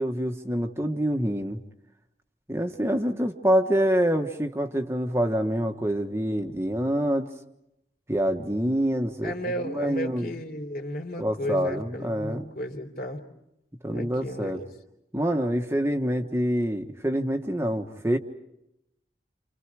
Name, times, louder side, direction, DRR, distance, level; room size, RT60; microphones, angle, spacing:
voice 1, 0.0-1.6 2.5-7.3 8.1-10.3 11.2-12.5 13.8-14.6 15.1-18.2, equal, 15° right, 4 dB, 1.3 m, -26 dB
voice 2, 9.2-13.2 13.9-14.6, equal, 55° left, 5 dB, 3.5 m, -34 dB
29.5 x 29.0 x 4.8 m, 0.84 s
head